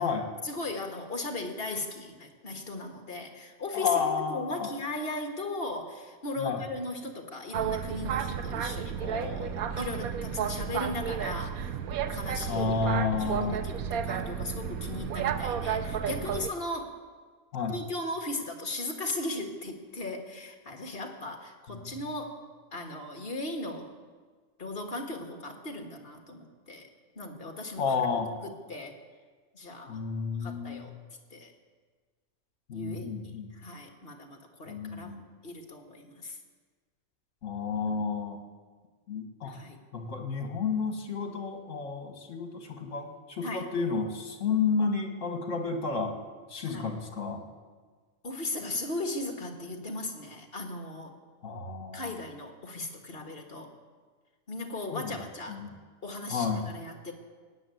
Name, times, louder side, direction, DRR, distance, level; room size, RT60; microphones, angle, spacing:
voice 1, 0.4-11.8 12.1-12.7 13.2-17.0 17.7-22.4 22.7-23.9 24.6-26.9 27.2-28.9 29.5-30.0 30.4-30.9 31.3-31.5 32.7-35.2 35.4-36.4 39.4-39.8 43.4-43.7 46.7-46.9 48.2-51.2 51.9-53.7 54.5-55.6 56.0-57.1, left 2 dB, 40° left, 4 dB, 1.8 m, -37 dB
voice 2, 3.7-4.7 6.4-6.6 12.5-13.6 17.5-17.8 21.7-22.0 27.8-28.3 29.9-30.9 32.7-33.5 34.7-35.3 37.4-38.4 39.1-39.6 39.9-46.2 46.5-47.4 51.4-52.0 54.9-55.2 55.5-55.7 56.3-56.8, left 5 dB, 60° left, 4 dB, 2.2 m, -31 dB
Boat Water vehicle, 7.5-16.5, right 8 dB, 80° right, 1.2 m, -32 dB
17.5 x 8.1 x 9.5 m, 1.5 s
omnidirectional pair, 1.5 m